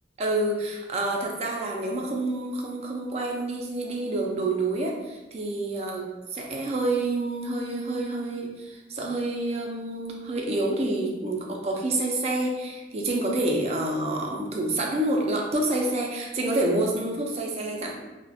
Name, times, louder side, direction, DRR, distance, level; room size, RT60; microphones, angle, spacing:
voice 1, 0.2-17.9, right 2 dB, 35° right, 0 dB, 0.3 m, -28 dB
2.3 x 2.1 x 2.6 m, 1.1 s
head